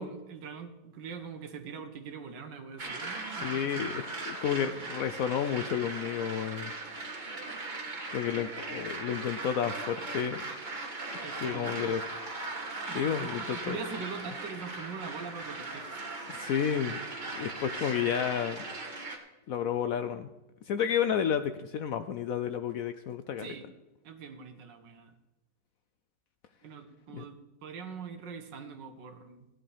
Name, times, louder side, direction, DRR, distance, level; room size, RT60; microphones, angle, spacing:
voice 1, 0.0-3.9 11.2-11.8 12.9-15.9 23.4-23.7 24.0-25.1 26.6-29.5, right 6 dB, 85° right, 7 dB, 1.8 m, -43 dB
sound 1, 2.8-19.2, right 3 dB, 30° right, 1.3 m, -39 dB
voice 2, 3.3-6.7 8.1-10.4 11.4-12.0 12.9-13.8 16.3-17.0 17.3-18.6 19.5-20.3 20.7-23.6 27.1-27.2, left 8 dB, 70° left, 10 dB, 0.8 m, -31 dB
16.5 x 11.0 x 3.4 m, 1.0 s
omnidirectional pair, 1.9 m